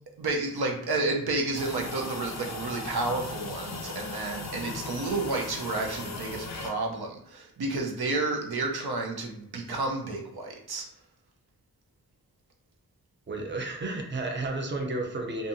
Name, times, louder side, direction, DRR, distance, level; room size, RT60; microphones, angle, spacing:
voice 1, 0.2-10.9, right 3 dB, 85° right, 1 dB, 0.6 m, -31 dB
sound 1, 1.5-6.7, left 3 dB, 45° left, 0.5 m, -38 dB
voice 2, 13.3-15.5, right 2 dB, 30° right, 2 dB, 0.5 m, -32 dB
2.6 x 2.4 x 2.6 m, 0.73 s
wide cardioid pair, 95°, 37 cm